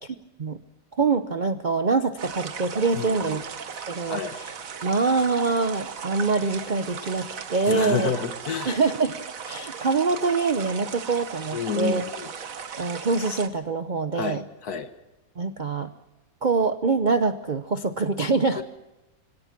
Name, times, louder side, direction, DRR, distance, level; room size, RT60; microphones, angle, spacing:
voice 1, 1.0-3.4 3.9-4.5 4.8-8.1 8.7-12.0 12.8-14.4 15.4-15.9 16.4-18.6, right 4 dB, 70° right, 10 dB, 0.4 m, -25 dB
sound 1, 2.2-13.5, right 6 dB, 50° right, 1.5 m, -37 dB
voice 2, 2.9-3.4 4.1-4.4 7.7-8.7 11.5-12.3 14.1-14.9 18.6-18.7, left 7 dB, 55° left, 9 dB, 1.6 m, -29 dB
25.0 x 17.5 x 5.9 m, 0.99 s
omnidirectional pair, 2.1 m